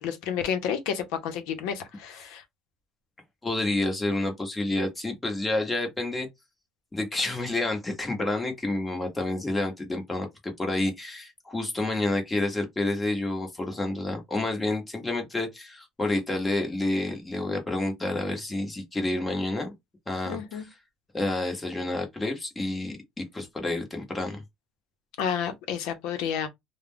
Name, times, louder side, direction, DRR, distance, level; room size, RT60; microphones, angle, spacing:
voice 1, 0.0-2.4 20.3-20.7 25.2-26.5, left 8 dB, 85° left, 0.7 m, -30 dB
voice 2, 3.4-6.3 6.9-19.7 20.1-20.6 21.1-24.4, left 2 dB, 15° left, 1.0 m, -29 dB
2.3 x 2.1 x 3.4 m
cardioid pair, 120°, 0 cm